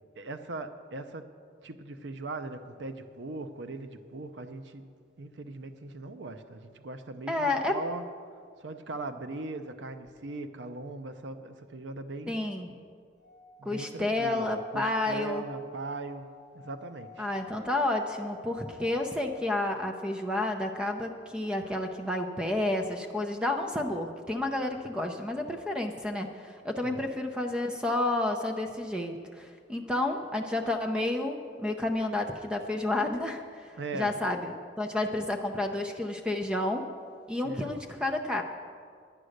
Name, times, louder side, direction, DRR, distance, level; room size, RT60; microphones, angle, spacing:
voice 1, 0.2-1.3 1.6-4.9 5.2-8.0 8.6-12.4 13.6-16.3 16.5-17.3 26.8-27.0 33.8-34.1 37.4-37.7, right 3 dB, 75° right, 9 dB, 0.6 m, -39 dB
voice 2, 7.3-7.8 12.3-12.8 13.6-15.4 17.2-36.9 37.3-38.4, left 2 dB, 5° right, 4 dB, 0.6 m, -30 dB
Singing / Glass, 13.1-19.8, left 8 dB, 45° right, 2.8 m, -51 dB
10.0 x 9.8 x 6.5 m, 2.1 s
head